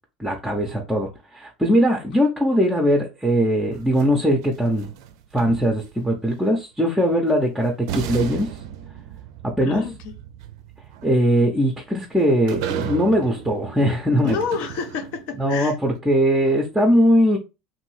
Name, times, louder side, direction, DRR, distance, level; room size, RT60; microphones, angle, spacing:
voice 1, 0.2-4.9 5.3-8.5 9.6-9.8 11.0-14.4 15.4-17.4, equal, 5° right, 0.6 m, -20 dB
sound 1, 3.7-6.1 7.3-7.4 7.9-15.3, right 9 dB, 65° right, 0.4 m, -35 dB
voice 2, 9.6-10.2 14.2-15.7, left 5 dB, 55° left, 0.7 m, -29 dB
2.6 x 2.6 x 3.1 m
hypercardioid pair, 80°, 3 cm